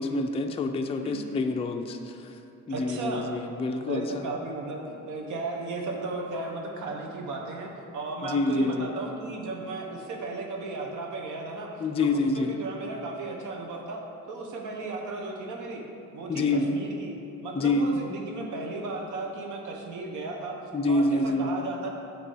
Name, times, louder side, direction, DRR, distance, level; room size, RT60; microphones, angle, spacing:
voice 1, 0.0-2.3 2.7-4.2 8.2-8.9 11.8-12.6 16.3-16.7 17.5-17.9 20.7-21.6, left 2 dB, 20° left, 5 dB, 0.4 m, -27 dB
voice 2, 2.7-3.3 3.9-11.7 12.0-14.0 14.3-15.8 16.1-17.1 17.4-20.6 20.9-21.9, right 3 dB, 75° right, 0 dB, 1.1 m, -35 dB
8.3 x 3.0 x 5.6 m, 2.7 s
cardioid pair, 90°, 30 cm